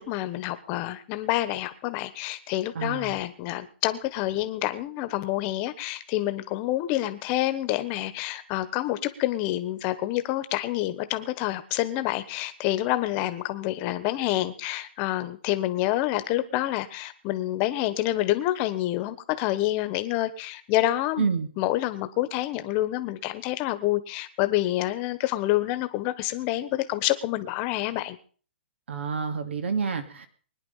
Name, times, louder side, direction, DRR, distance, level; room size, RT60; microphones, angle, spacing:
voice 1, 0.0-21.3 21.6-28.2, left 15 dB, 25° left, 12 dB, 1.2 m, -28 dB
voice 2, 2.7-3.2 21.2-21.5 28.9-30.3, right 5 dB, 85° right, 9 dB, 2.6 m, -28 dB
21.5 x 10.5 x 5.6 m, 0.42 s
hypercardioid pair, 165°, 6 cm